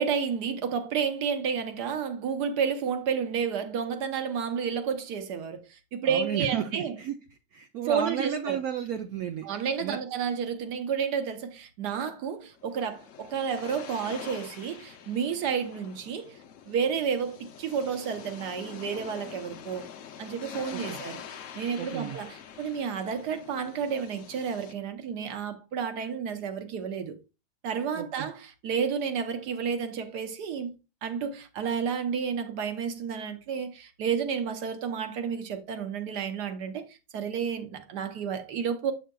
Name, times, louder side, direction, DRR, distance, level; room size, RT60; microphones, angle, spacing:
voice 1, 0.0-7.0 7.9-8.6 9.4-16.4 16.7-19.9 20.2-27.1 27.6-30.7 31.0-38.9, right 7 dB, 60° right, 1.3 m, -31 dB
voice 2, 6.0-7.2 7.5-9.5 9.8-10.0 20.7-21.0 21.8-22.2 27.9-28.3, right 8 dB, 75° right, 0.8 m, -33 dB
sound 1, 12.5-24.7, left 8 dB, 80° left, 0.7 m, -45 dB
7.8 x 6.4 x 2.3 m
omnidirectional pair, 2.2 m